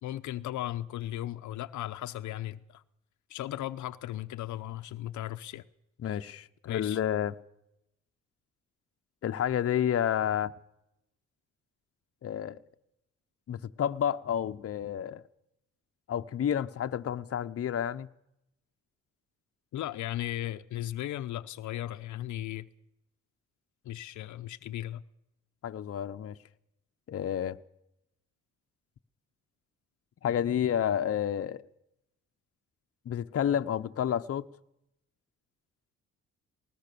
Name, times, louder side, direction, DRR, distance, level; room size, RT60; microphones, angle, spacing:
voice 1, 0.0-2.8 3.3-5.7 6.0-6.2 6.7-7.0 19.7-22.7 23.8-25.0, left 13 dB, 75° left, 0.8 m, -36 dB
voice 2, 6.0-7.3 9.2-10.5 12.2-12.6 13.5-15.2 16.1-18.1 25.6-26.3 27.1-27.6 30.2-31.6 33.1-34.4, left 9 dB, 50° left, 0.9 m, -30 dB
19.5 x 19.5 x 6.9 m
cardioid pair, 90°, 30 cm